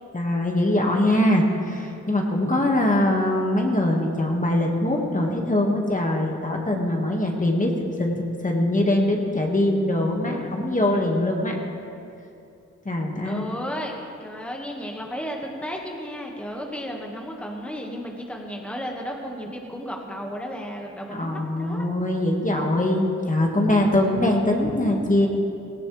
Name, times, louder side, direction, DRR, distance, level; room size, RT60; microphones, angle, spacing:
voice 1, 0.1-7.7 8.0-11.6 12.9-13.5 21.1-25.3, left 1 dB, 25° left, 0 dB, 1.9 m, -22 dB
voice 2, 13.2-21.8, equal, 5° left, 0 dB, 1.8 m, -34 dB
18.0 x 16.0 x 3.4 m, 2.6 s
cardioid pair, 65°, 29 cm